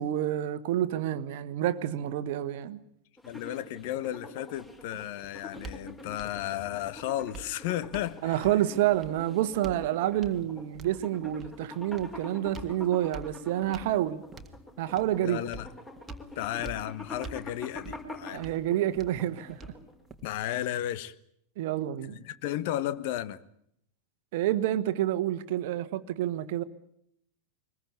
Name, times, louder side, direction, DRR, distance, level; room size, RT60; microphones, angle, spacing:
voice 1, 0.0-2.8 8.2-14.2 14.8-15.4 18.3-19.7 21.6-22.2 24.3-26.6, right 12 dB, 50° right, 1.3 m, -28 dB
voice 2, 3.2-8.4 15.2-15.7 16.3-18.4 20.2-21.1 22.1-23.4, left 12 dB, 50° left, 1.2 m, -34 dB
sound 1, 3.2-20.0, left 2 dB, 15° left, 5.2 m, -45 dB
sound 2, 4.5-20.5, right 3 dB, 20° right, 1.9 m, -48 dB
24.0 x 20.5 x 8.5 m
figure-of-eight pair, 90°, 0 cm